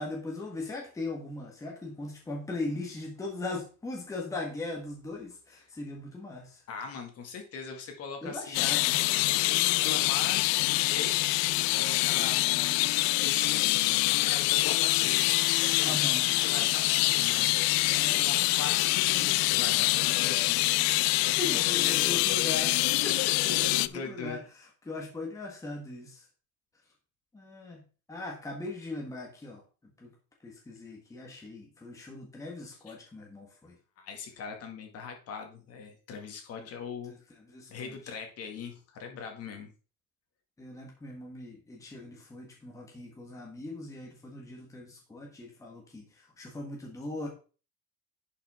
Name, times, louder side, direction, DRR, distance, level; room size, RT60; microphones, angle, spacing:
voice 1, 0.0-6.6 8.2-9.0 15.8-16.3 17.9-18.8 21.4-26.2 27.3-27.8 28.1-29.6 30.0-30.1 30.4-33.8 36.6-36.7 37.1-38.1 40.6-47.3, left 2 dB, 10° left, -1 dB, 1.4 m, -39 dB
voice 2, 6.7-8.6 9.4-15.3 15.8-16.0 16.4-17.5 18.1-20.6 21.2-22.4 23.5-24.4 32.9-33.0 34.0-37.1 37.7-39.7, left 5 dB, 40° left, 4 dB, 2.0 m, -41 dB
sound 1, 8.5-23.9, left 20 dB, 80° left, 0.5 m, -25 dB
11.0 x 5.7 x 3.6 m, 0.36 s
cardioid pair, 180°, 35 cm